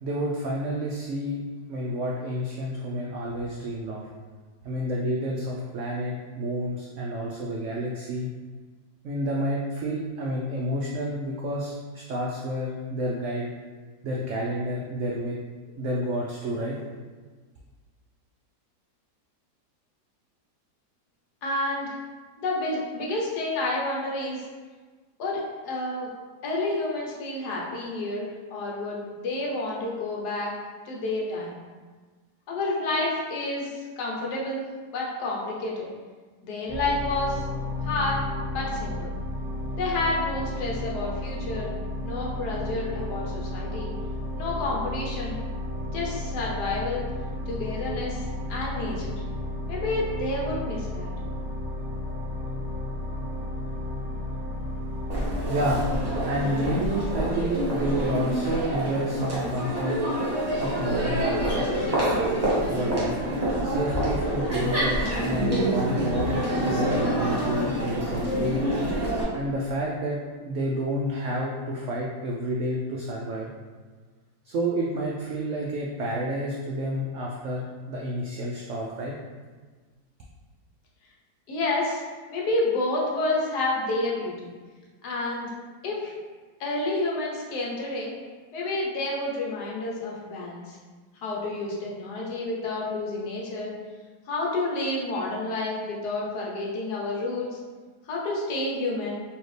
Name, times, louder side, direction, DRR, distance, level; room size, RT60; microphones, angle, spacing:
voice 1, 0.0-1.4 1.7-4.1 4.6-8.3 9.0-13.5 14.0-15.4 15.8-16.8 55.4-60.0 60.6-61.7 62.7-63.2 63.6-68.7 69.3-73.5 74.4-79.1, equal, 80° right, -3 dB, 0.6 m, -29 dB
voice 2, 21.4-22.0 22.4-24.5 25.2-26.1 26.4-30.5 30.9-31.6 32.5-34.6 34.9-35.9 36.4-37.4 37.8-38.2 38.5-39.1 39.8-41.7 42.0-43.9 44.4-45.4 45.9-47.0 47.5-49.2 49.7-51.1 81.5-82.0 82.3-84.5 85.0-85.5 85.8-86.1 86.6-88.1 88.5-90.8 91.2-93.7 94.3-97.6 98.1-99.1, left 2 dB, 75° left, -3 dB, 1.4 m, -29 dB
sound 1, 36.7-56.3, left 1 dB, 25° left, 0.4 m, -33 dB
Crowd, 55.1-69.2, right 1 dB, 25° right, 1.1 m, -27 dB
4.3 x 2.8 x 3.2 m, 1.4 s
omnidirectional pair, 1.8 m